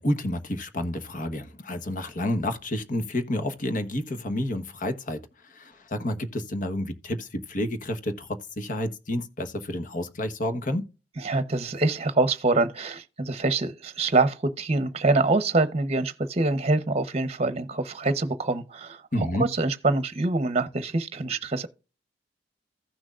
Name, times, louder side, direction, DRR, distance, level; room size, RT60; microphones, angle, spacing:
voice 1, 0.0-10.9 19.1-19.5, left 1 dB, 50° left, 1.2 m, -30 dB
voice 2, 11.2-21.7, right 2 dB, 35° right, 0.8 m, -25 dB
16.0 x 6.2 x 2.5 m
head